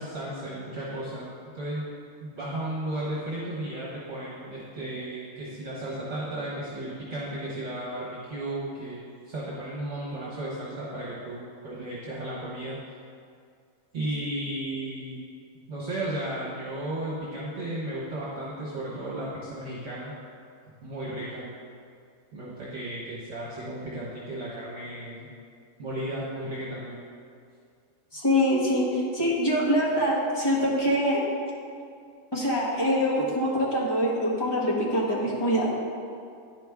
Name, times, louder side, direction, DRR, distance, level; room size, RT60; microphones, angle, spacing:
voice 1, 0.0-1.8 2.2-12.8 13.9-15.2 15.7-20.1 20.8-21.5 22.3-25.3 25.8-27.0, right 1 dB, 55° right, -7 dB, 1.5 m, -34 dB
voice 2, 28.1-31.2 32.3-35.7, equal, 20° left, -6 dB, 1.4 m, -24 dB
10.5 x 5.1 x 3.5 m, 2.3 s
omnidirectional pair, 1.5 m